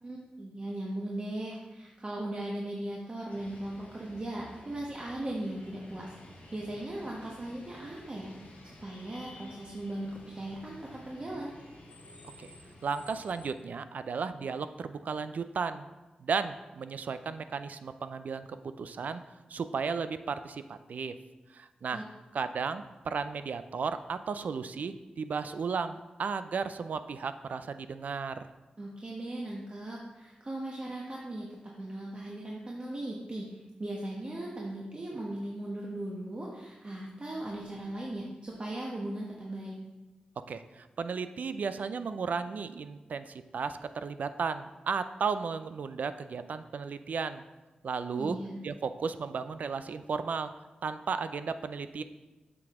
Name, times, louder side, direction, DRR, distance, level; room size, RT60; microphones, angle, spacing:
voice 1, 0.0-6.1 6.5-11.5 21.9-22.0 28.8-39.8 48.1-48.6, right 1 dB, 40° right, -3 dB, 1.1 m, -38 dB
sound 1, 3.3-13.5, left 1 dB, 85° left, 1.9 m, -52 dB
voice 2, 12.8-15.9 16.2-18.5 18.8-21.1 21.5-22.0 22.3-28.4 40.5-47.4 47.8-48.4 48.6-50.5 50.8-52.0, right 5 dB, 70° right, 11 dB, 0.4 m, -34 dB
7.5 x 6.0 x 3.6 m, 1.1 s
cardioid pair, 55°, 3 cm